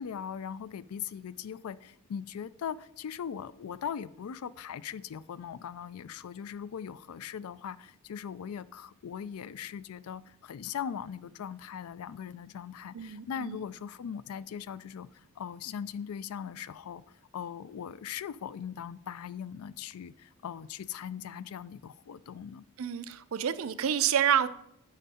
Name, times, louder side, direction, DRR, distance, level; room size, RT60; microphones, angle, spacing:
voice 1, 0.0-17.0 17.3-22.6, left 8 dB, 90° left, 0.4 m, -40 dB
voice 2, 12.9-13.6 22.8-24.5, right 9 dB, 75° right, 0.5 m, -28 dB
8.9 x 5.2 x 4.2 m
head